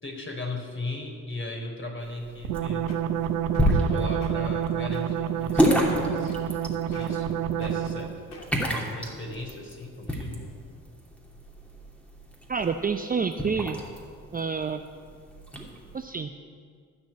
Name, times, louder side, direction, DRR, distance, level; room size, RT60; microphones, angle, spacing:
voice 1, 0.0-2.9 3.7-8.1 8.7-10.4, left 2 dB, 30° left, 1 dB, 3.6 m, -37 dB
sound 1, 2.0-16.0, equal, 5° left, 2.8 m, -30 dB
sound 2, 2.4-8.2, right 9 dB, 80° right, 0.8 m, -28 dB
sound 3, 2.5-2.6 2.9-3.2 3.5-3.8 4.1-4.3 4.9-5.3 5.6-5.8 6.3-6.6 6.9-7.3 7.6-7.8 8.3-8.7 9.3-9.4, left 3 dB, 50° left, 2.5 m, -47 dB
voice 2, 12.5-13.8 14.3-14.8 15.9-16.3, right 5 dB, 20° right, 6 dB, 0.6 m, -28 dB
13.5 x 6.3 x 9.5 m, 2.1 s
hypercardioid pair, 50°, 42 cm